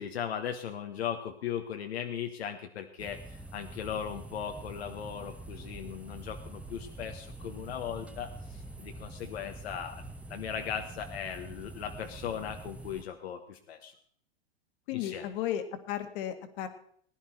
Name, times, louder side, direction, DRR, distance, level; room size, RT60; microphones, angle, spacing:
voice 1, 0.0-10.0 10.3-13.9 14.9-15.3, left 8 dB, 80° left, 4 dB, 1.3 m, -38 dB
sound 1, 3.0-13.0, right 2 dB, 5° right, 0.9 m, -45 dB
voice 2, 14.9-16.7, left 11 dB, 55° left, 8 dB, 2.1 m, -34 dB
19.0 x 10.5 x 4.5 m, 0.62 s
hypercardioid pair, 120°, 31 cm